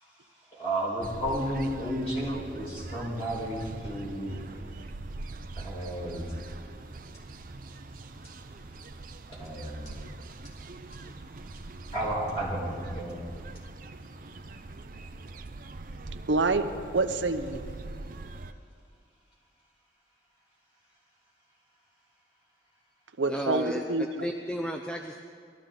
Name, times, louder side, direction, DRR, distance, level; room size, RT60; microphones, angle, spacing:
voice 1, 0.5-4.4 5.6-6.3 9.4-10.0 11.9-13.2 16.7-17.0 17.4-17.8, right 1 dB, 35° left, -5 dB, 4.7 m, -33 dB
sound 1, 1.0-18.5, right 2 dB, 45° right, 0.5 m, -43 dB
voice 2, 16.3-17.6 23.2-24.3, right 3 dB, 80° right, 8 dB, 0.7 m, -27 dB
voice 3, 23.3-23.8 24.2-25.2, equal, 5° left, 3 dB, 0.5 m, -32 dB
19.5 x 13.5 x 3.9 m, 2.2 s
head